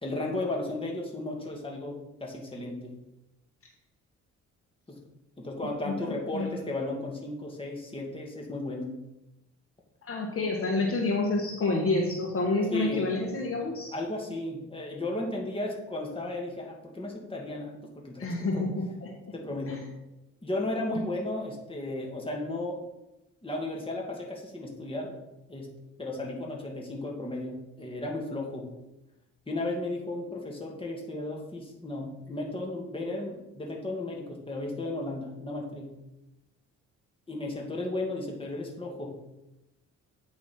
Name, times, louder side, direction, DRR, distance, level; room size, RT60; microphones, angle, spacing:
voice 1, 0.0-2.9 4.9-5.0 5.4-9.0 12.7-13.1 13.9-18.7 19.3-19.8 20.4-22.8 23.4-25.1 25.5-25.7 26.0-28.7 29.5-35.9 37.3-39.2, left 2 dB, 20° left, -1 dB, 2.1 m, -34 dB
voice 2, 5.8-6.5 10.0-13.9 18.2-19.1 19.7-19.8 20.9-21.0, left 2 dB, 50° left, 0 dB, 1.5 m, -29 dB
8.7 x 5.6 x 4.4 m, 0.93 s
cardioid pair, 90°, 30 cm